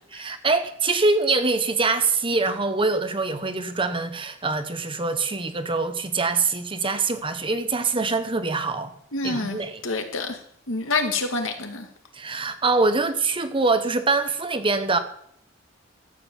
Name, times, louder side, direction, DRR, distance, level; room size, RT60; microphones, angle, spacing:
voice 1, 0.1-8.9 9.2-9.8 12.1-15.0, right 3 dB, 25° right, 1.1 m, -24 dB
voice 2, 9.1-10.4 10.7-11.9, left 3 dB, 75° left, 2.2 m, -27 dB
13.0 x 7.8 x 7.5 m
head